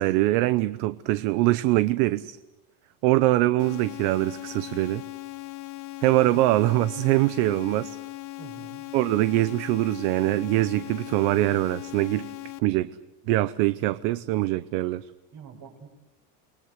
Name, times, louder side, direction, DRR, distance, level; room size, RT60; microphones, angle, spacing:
voice 1, 0.0-2.4 3.0-5.0 6.0-8.0 8.9-12.3 12.6-12.9 13.3-15.1, right 17 dB, 60° right, 15 dB, 0.9 m, -23 dB
sound 1, 3.6-12.6, left 20 dB, 40° left, 1.2 m, -39 dB
voice 2, 8.4-8.8 15.3-15.9, right 6 dB, 35° right, 5 dB, 5.5 m, -45 dB
29.5 x 21.0 x 8.0 m, 1.0 s
cardioid pair, 155°, 47 cm